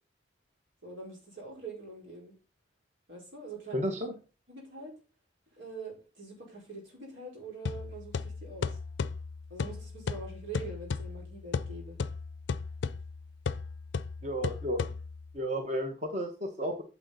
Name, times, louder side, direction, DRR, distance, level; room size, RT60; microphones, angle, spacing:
voice 1, 0.8-2.3 3.1-3.8 4.5-5.0 5.5-8.7 9.5-12.0 14.8-14.9, right 3 dB, 90° right, -1 dB, 4.7 m, -44 dB
voice 2, 3.7-4.1 14.2-14.8 15.3-16.8, equal, 35° right, 4 dB, 1.0 m, -32 dB
sound 1, 7.7-15.4, left 4 dB, 75° left, 0.4 m, -36 dB
8.8 x 7.1 x 3.9 m, 0.33 s
head